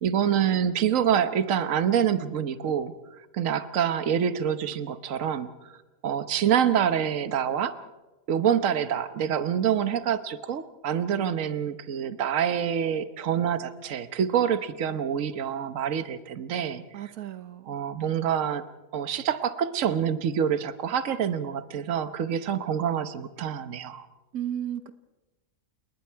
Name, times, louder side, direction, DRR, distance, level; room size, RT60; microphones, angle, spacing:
voice 1, 0.0-2.9 3.3-5.5 6.0-7.8 8.3-16.8 17.7-18.6 18.9-24.1, right 8 dB, 65° right, 11 dB, 1.4 m, -26 dB
voice 2, 16.9-17.8 24.3-24.9, right 10 dB, 80° right, 11 dB, 1.4 m, -34 dB
29.5 x 19.0 x 4.6 m, 1.1 s
omnidirectional pair, 1.5 m